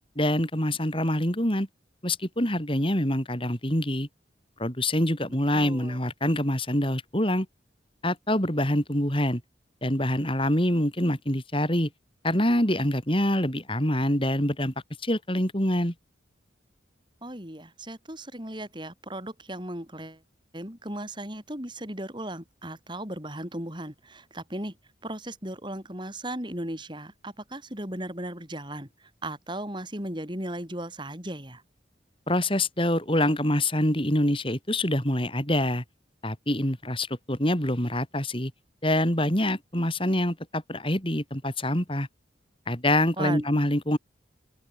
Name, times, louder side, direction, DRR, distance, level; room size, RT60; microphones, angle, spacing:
voice 1, 0.2-1.7 2.0-4.1 4.6-7.5 8.0-9.4 9.8-11.9 12.2-14.7 15.0-15.9 32.3-35.8 36.2-38.5 38.8-42.1 42.7-44.0, left 1 dB, 25° left, 6.2 m, -25 dB
voice 2, 5.5-6.0 17.2-20.2 20.5-24.7 25.0-28.9 29.2-31.6 43.2-43.5, right 1 dB, 25° right, 6.3 m, -36 dB
open air
head